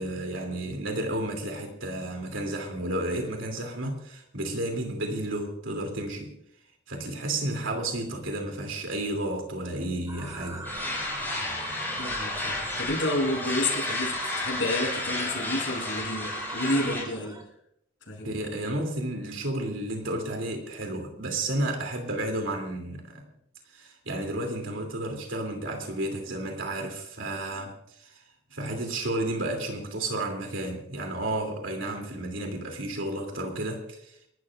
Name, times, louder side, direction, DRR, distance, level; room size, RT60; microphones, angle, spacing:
voice 1, 0.0-6.3 6.9-10.8 18.2-23.3 23.7-27.7 28.0-28.2 28.5-34.1, right 1 dB, 90° right, 2.8 m, -32 dB
sound 1, 10.1-17.4, right 2 dB, 20° right, 3.3 m, -39 dB
sound 2, 10.6-17.0, left 2 dB, 10° left, 6.2 m, -32 dB
voice 2, 12.0-17.4 18.1-18.4, left 1 dB, 75° left, 7.0 m, -30 dB
29.0 x 13.0 x 2.5 m
head